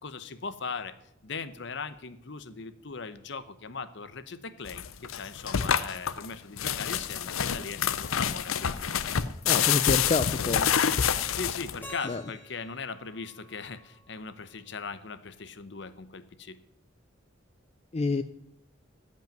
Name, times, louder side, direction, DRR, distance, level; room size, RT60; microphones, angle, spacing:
voice 1, 0.0-0.9 1.2-9.1 11.3-16.6, left 5 dB, 60° left, 12 dB, 0.8 m, -39 dB
sound 1, 4.7-11.9, left 8 dB, 85° left, 0.6 m, -27 dB
voice 2, 9.5-10.7 12.1-12.2 17.9-18.2, left 3 dB, 30° left, 10 dB, 0.4 m, -27 dB
Keyboard (musical), 11.8-14.8, equal, 10° left, 1.7 m, -50 dB
16.0 x 5.4 x 9.0 m, 0.83 s
head